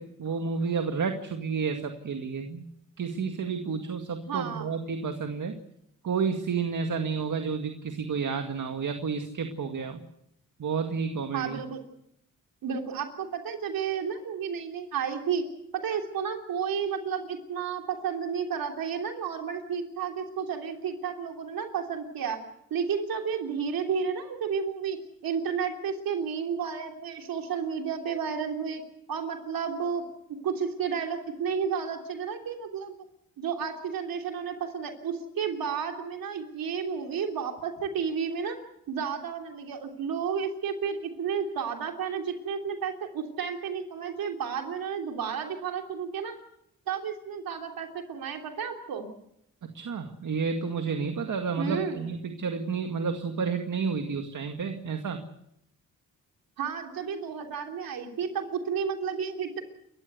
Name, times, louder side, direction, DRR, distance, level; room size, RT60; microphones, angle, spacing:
voice 1, 0.0-2.7 3.0-5.5 6.0-10.0 10.6-11.6 49.6-55.3, right 5 dB, 60° right, 6 dB, 2.1 m, -31 dB
voice 2, 4.3-4.7 11.3-11.8 12.6-15.4 15.7-22.4 22.7-25.0 25.2-28.8 29.1-30.0 30.4-33.0 33.4-38.6 38.9-46.3 46.9-49.1 51.6-52.1 56.6-59.6, right 6 dB, 85° right, 4 dB, 3.3 m, -32 dB
29.0 x 14.5 x 8.1 m, 0.77 s
cardioid pair, 65°, 34 cm